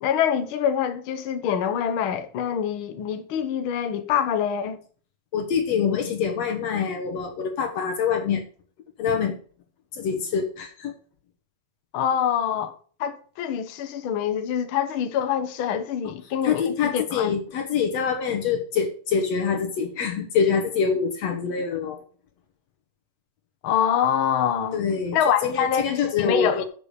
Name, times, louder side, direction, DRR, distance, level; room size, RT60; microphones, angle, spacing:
voice 1, 0.0-4.8 11.9-12.7 13.0-17.3 23.6-24.8 25.1-26.6, left 8 dB, 85° left, 1.1 m, -25 dB
voice 2, 5.3-8.4 9.0-9.4 9.9-10.9 16.4-22.0 24.7-25.2 25.4-26.6, left 6 dB, 60° left, 2.1 m, -25 dB
7.0 x 6.8 x 6.6 m
omnidirectional pair, 3.8 m